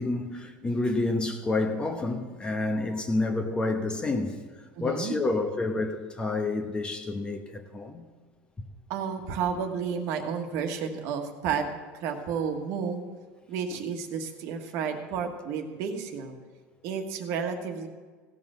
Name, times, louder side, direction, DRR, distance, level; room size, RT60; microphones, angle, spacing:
voice 1, 0.0-4.4 4.8-8.0, left 2 dB, 20° left, 1.0 m, -29 dB
voice 2, 4.7-5.2 8.9-13.0 13.5-16.3 16.8-17.9, right 6 dB, 65° right, 1.4 m, -31 dB
16.0 x 5.5 x 7.4 m
cardioid pair, 135°, 5 cm